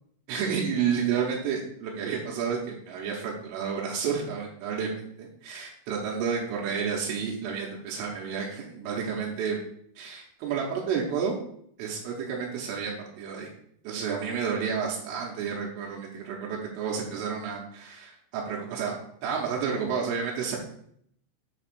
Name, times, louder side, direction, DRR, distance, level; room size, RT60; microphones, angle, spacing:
voice 1, 0.3-9.6 10.0-11.4 11.8-13.5 13.9-18.9 19.2-20.6, right 6 dB, 80° right, -3 dB, 3.5 m, -30 dB
7.6 x 3.0 x 6.0 m, 0.68 s
omnidirectional pair, 5.7 m